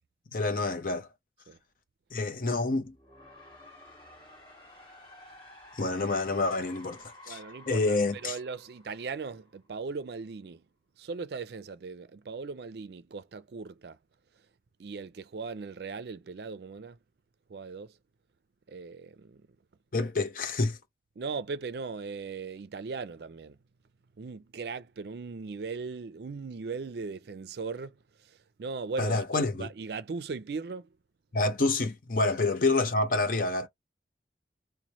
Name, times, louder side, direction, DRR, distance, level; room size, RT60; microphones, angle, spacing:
voice 1, 0.3-1.1 2.1-2.9 5.8-7.4 7.7-8.4 19.9-20.8 29.0-29.7 31.3-33.7, left 3 dB, 50° left, 0.7 m, -28 dB
sound 1, 2.8-9.7, left 1 dB, 25° left, 1.6 m, -53 dB
voice 2, 7.3-10.6 11.0-14.0 14.8-17.0 17.5-17.9 18.7-19.5 21.2-23.6 24.2-28.0 28.2-30.9, right 4 dB, 65° right, 0.4 m, -38 dB
3.1 x 2.1 x 4.0 m
head